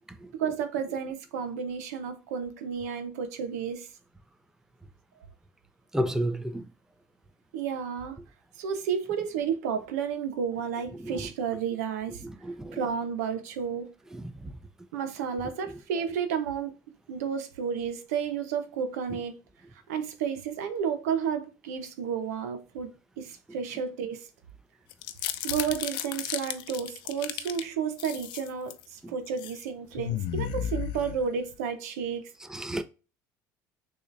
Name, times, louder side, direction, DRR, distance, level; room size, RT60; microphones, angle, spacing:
voice 1, 0.3-3.9 7.5-8.2 8.6-12.2 12.7-13.9 14.9-16.7 17.1-19.4 19.9-24.3 25.4-32.2, right 7 dB, 85° right, 0.7 m, -32 dB
voice 2, 5.9-6.6 12.4-12.8 14.1-14.5 32.5-32.8, equal, 5° right, 0.6 m, -30 dB
sound 1, 24.9-27.6 28.0-28.8 29.3-29.6 29.9-31.6, left 11 dB, 70° left, 0.5 m, -34 dB
6.3 x 3.0 x 2.5 m
hypercardioid pair, 75°, 8 cm